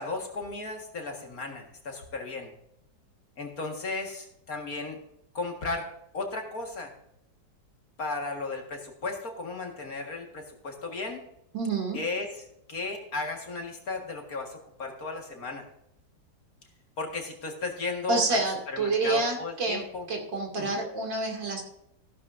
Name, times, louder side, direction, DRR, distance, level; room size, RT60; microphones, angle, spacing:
voice 1, 0.0-2.5 3.4-5.0 5.3-5.9 6.1-6.9 8.0-11.2 11.9-12.4 12.7-15.7 17.0-20.1 20.6-20.8, left 3 dB, 50° left, 2 dB, 2.2 m, -35 dB
voice 2, 11.5-12.0 18.1-19.8 20.1-21.6, right 3 dB, 70° right, 1 dB, 3.3 m, -28 dB
15.0 x 12.0 x 2.6 m, 0.79 s
omnidirectional pair, 2.1 m